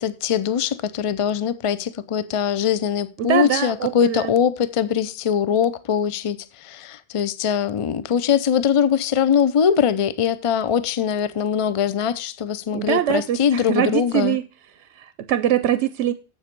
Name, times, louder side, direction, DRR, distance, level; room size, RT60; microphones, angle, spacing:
voice 1, 0.0-14.4, left 8 dB, 40° left, 0.5 m, -22 dB
voice 2, 3.2-4.3 12.7-14.4 14.9-16.1, right 11 dB, 85° right, 0.9 m, -22 dB
7.5 x 7.1 x 5.1 m
omnidirectional pair, 1.2 m